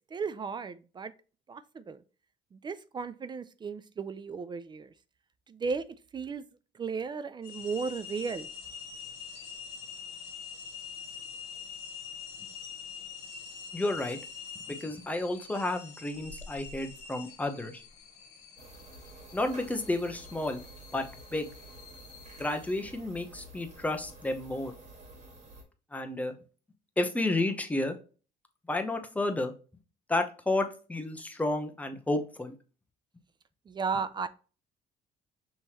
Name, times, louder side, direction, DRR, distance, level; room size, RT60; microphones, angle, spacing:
voice 1, 0.1-1.1 1.5-2.0 2.5-4.9 5.5-5.9 6.1-6.4 6.7-8.5 33.7-34.3, right 5 dB, 25° right, 0.3 m, -35 dB
sound 1, 7.4-22.8, left 6 dB, 85° left, 1.2 m, -45 dB
voice 2, 13.7-14.2 14.7-17.8 19.3-20.6 20.9-21.1 21.3-21.5 22.4-24.7 25.9-26.3 27.0-28.0 28.7-29.5 30.1-32.5, left 2 dB, 10° left, 0.7 m, -31 dB
sound 2, 18.6-25.6, right 2 dB, 45° right, 1.7 m, -50 dB
5.4 x 3.1 x 2.9 m
cardioid pair, 110°, 17 cm